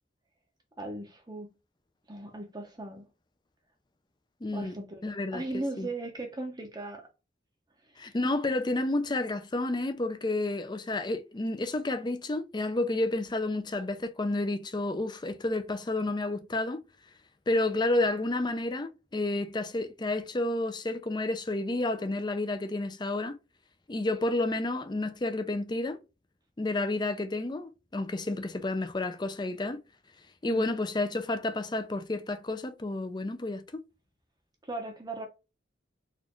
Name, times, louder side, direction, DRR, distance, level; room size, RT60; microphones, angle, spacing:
voice 1, 0.8-1.5 2.1-3.1 4.5-5.0 5.3-7.1 7.9-8.1 30.5-30.7 34.6-35.3, right 2 dB, 20° right, 0.7 m, -38 dB
voice 2, 4.4-5.5 5.8-5.9 8.0-16.8 17.5-23.4 23.9-26.0 26.6-29.8 30.4-33.6, left 2 dB, 25° left, 0.5 m, -30 dB
4.2 x 2.5 x 3.0 m
head